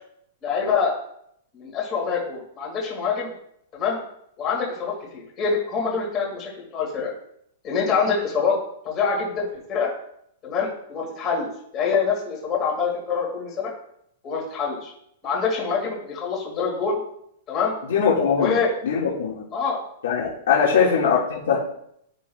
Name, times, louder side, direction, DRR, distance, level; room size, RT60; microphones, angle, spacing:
voice 1, 0.4-1.0 1.5-3.3 3.7-4.0 4.4-7.1 7.6-8.6 8.8-9.9 10.4-13.7 14.2-14.9 15.2-17.0 17.5-17.7 18.3-18.7 19.5-19.8 20.6-20.7, left 5 dB, 20° left, -3 dB, 2.0 m, -25 dB
voice 2, 17.9-18.6 18.8-19.5 20.0-21.7, left 6 dB, 75° left, -5 dB, 1.8 m, -21 dB
11.0 x 5.6 x 2.3 m, 0.71 s
supercardioid pair, 170°, 0 cm